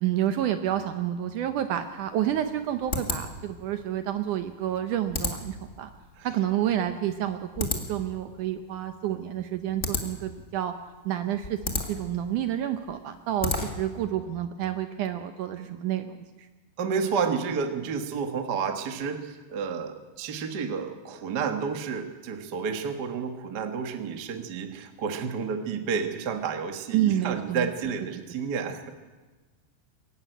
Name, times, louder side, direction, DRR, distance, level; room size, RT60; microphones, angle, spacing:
voice 1, 0.0-5.9 6.2-10.7 11.1-16.2 26.9-27.6, right 11 dB, 75° right, 9 dB, 2.0 m, -29 dB
sound 1, 1.8-14.0, left 3 dB, 40° left, 1.0 m, -35 dB
voice 2, 16.8-28.9, right 6 dB, 55° right, 6 dB, 1.1 m, -30 dB
22.5 x 12.5 x 9.1 m, 1.3 s
omnidirectional pair, 4.3 m